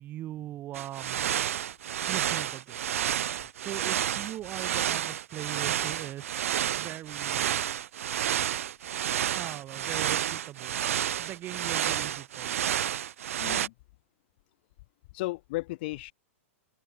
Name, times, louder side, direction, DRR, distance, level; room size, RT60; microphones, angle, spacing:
voice 1, 0.0-1.3 2.1-2.8 3.6-7.6 9.3-10.8 11.2-12.7, right 13 dB, 25° right, 2.3 m, -41 dB
sound 1, 0.7-13.7, right 10 dB, 80° right, 1.3 m, -30 dB
voice 2, 13.4-13.7 15.1-16.1, left 21 dB, 50° left, 4.6 m, -34 dB
supercardioid pair, 155°, 7 cm